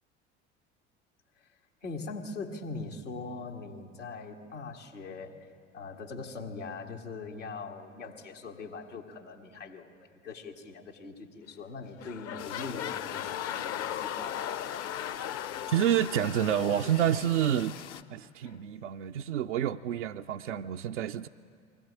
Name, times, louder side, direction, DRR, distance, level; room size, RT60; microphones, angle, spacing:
voice 1, 1.8-5.5 5.7-14.5, left 3 dB, 90° left, -1 dB, 2.0 m, -41 dB
sound 1, 11.4-11.7 12.0-17.8 18.5-18.6, left 10 dB, 40° left, 0.6 m, -38 dB
sound 2, 12.4-18.0, left 10 dB, 70° left, 0.9 m, -45 dB
voice 2, 15.7-17.7 18.1-21.3, right 10 dB, 85° right, 3 dB, 0.5 m, -28 dB
22.5 x 17.0 x 10.0 m, 2.2 s
figure-of-eight pair, 70°, 36 cm